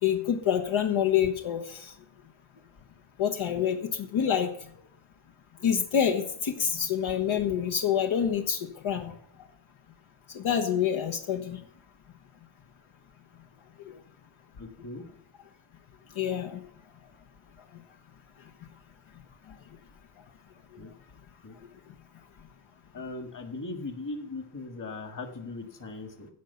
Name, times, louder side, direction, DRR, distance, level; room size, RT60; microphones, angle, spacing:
voice 1, 0.0-1.9 3.2-4.5 5.6-9.1 10.3-11.6 13.9-14.0 16.2-16.6, left 8 dB, 75° left, 4 dB, 1.3 m, -27 dB
voice 2, 14.6-15.0 20.8-20.9 21.4-21.5 22.9-26.3, left 3 dB, 40° left, 4 dB, 1.9 m, -39 dB
15.5 x 5.3 x 7.0 m, 0.67 s
wide cardioid pair, 150°, 48 cm